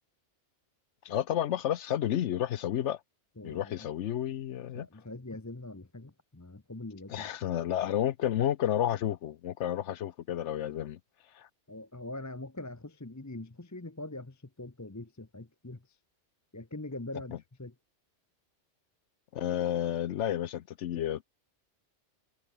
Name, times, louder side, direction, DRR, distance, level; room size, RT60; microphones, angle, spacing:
voice 1, 1.0-3.0 3.4-4.9 7.1-11.0 11.3-11.5 19.3-21.2, left 11 dB, 80° left, 1.0 m, -31 dB
voice 2, 3.4-3.9 4.7-7.5 11.7-16.0 16.5-17.7, left 2 dB, 15° left, 0.9 m, -43 dB
omnidirectional pair, 1.2 m